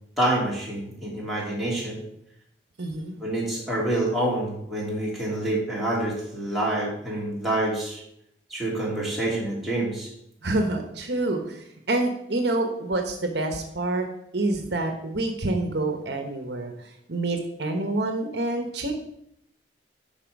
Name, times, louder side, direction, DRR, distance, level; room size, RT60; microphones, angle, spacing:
voice 1, 0.2-2.0 3.2-8.0 8.5-10.1, right 1 dB, ahead, -7 dB, 2.8 m, -27 dB
voice 2, 2.8-3.1 10.4-14.1 14.3-18.9, right 2 dB, 65° right, 5 dB, 1.0 m, -27 dB
10.5 x 4.3 x 5.3 m, 0.76 s
head